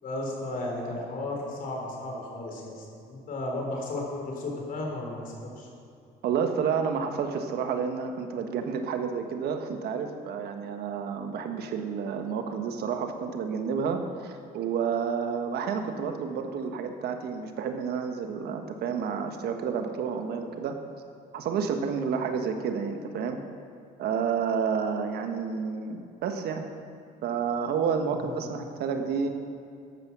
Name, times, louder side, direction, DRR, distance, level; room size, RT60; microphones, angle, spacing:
voice 1, 0.0-5.7 28.2-28.5, left 2 dB, 55° left, 0 dB, 4.1 m, -34 dB
voice 2, 6.2-20.7 21.3-23.4 24.0-26.7 27.2-29.3, right 6 dB, 70° right, 6 dB, 1.4 m, -30 dB
13.5 x 11.0 x 6.0 m, 2.5 s
cardioid pair, 110°, 17 cm